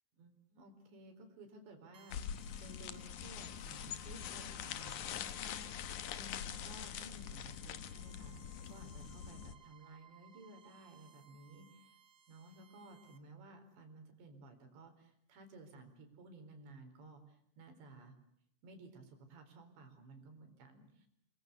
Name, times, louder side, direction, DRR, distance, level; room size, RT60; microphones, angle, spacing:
voice 1, 0.2-12.0 12.3-18.1 18.6-21.1, right 2 dB, 65° right, 6 dB, 6.4 m, -56 dB
sound 1, 1.9-13.2, right 9 dB, 40° right, 1.9 m, -64 dB
sound 2, 2.1-9.6, left 9 dB, 80° left, 1.7 m, -44 dB
30.0 x 22.0 x 8.2 m, 0.72 s
omnidirectional pair, 5.4 m